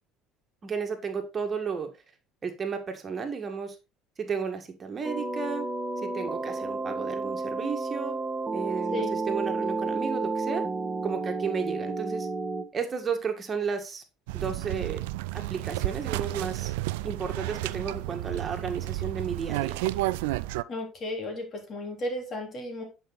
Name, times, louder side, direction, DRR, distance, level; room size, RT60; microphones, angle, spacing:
voice 1, 0.6-1.9 2.4-3.8 4.2-5.7 6.0-8.2 8.5-10.6 11.0-12.3 12.7-14.0 14.3-15.0 15.3-16.7 17.0-19.8, right 6 dB, 35° right, 5 dB, 1.9 m, -33 dB
sound 1, 5.0-12.6, right 3 dB, 15° right, 1.4 m, -31 dB
sound 2, 14.3-20.6, right 18 dB, 75° right, 0.3 m, -31 dB
voice 2, 20.7-22.8, left 1 dB, 45° left, 4 dB, 3.6 m, -34 dB
10.0 x 5.5 x 4.0 m, 0.28 s
hypercardioid pair, 65°, 0 cm